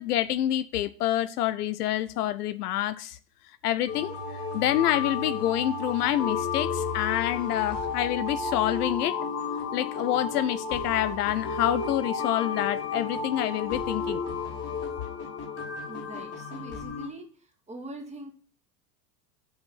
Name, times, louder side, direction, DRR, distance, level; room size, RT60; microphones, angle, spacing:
voice 1, 0.0-3.2 3.6-4.2 4.5-9.1 9.7-14.2, left 13 dB, 65° left, 14 dB, 0.7 m, -27 dB
sound 1, 3.9-17.1, left 5 dB, 30° left, 2.7 m, -32 dB
voice 2, 15.9-17.3 17.7-18.3, right 1 dB, 15° right, 1 dB, 2.3 m, -42 dB
7.1 x 5.2 x 7.1 m, 0.40 s
hypercardioid pair, 85°, 49 cm